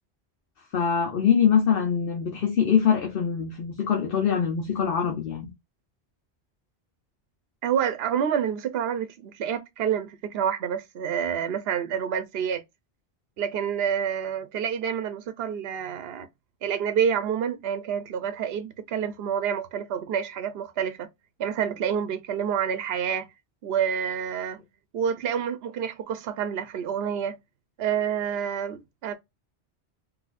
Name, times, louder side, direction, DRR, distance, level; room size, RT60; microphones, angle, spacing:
voice 1, 0.7-5.5, left 7 dB, 60° left, 1.0 m, -23 dB
voice 2, 7.6-12.6 13.4-16.3 16.6-21.1 21.4-23.3 23.6-24.6 24.9-27.4 27.8-29.1, right 8 dB, 70° right, 0.8 m, -28 dB
4.0 x 2.6 x 2.4 m
omnidirectional pair, 1.1 m